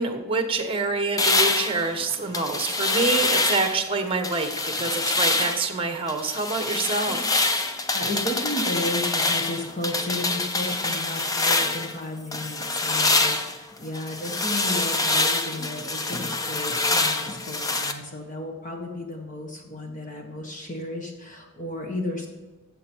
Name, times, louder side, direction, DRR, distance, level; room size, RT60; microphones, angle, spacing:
voice 1, 0.0-7.3, right 3 dB, 25° right, 6 dB, 1.2 m, -26 dB
sound 1, 1.2-3.8 4.2-5.7 6.1-12.0 12.3-17.9, left 2 dB, 15° left, 0.6 m, -25 dB
voice 2, 7.9-22.3, left 1 dB, 35° left, 1 dB, 1.5 m, -33 dB
14.5 x 7.7 x 4.6 m, 1.3 s
head